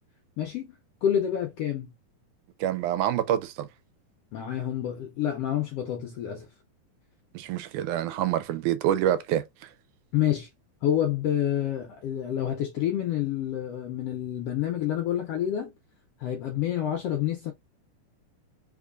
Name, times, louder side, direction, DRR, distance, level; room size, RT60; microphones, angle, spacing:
voice 1, 0.4-0.7 1.0-1.9 4.3-6.5 10.1-10.5 10.8-15.7 16.2-17.5, left 10 dB, 80° left, 1.4 m, -28 dB
voice 2, 2.6-3.7 7.3-9.7, right 11 dB, 85° right, 2.0 m, -27 dB
4.3 x 3.6 x 2.4 m
omnidirectional pair, 3.6 m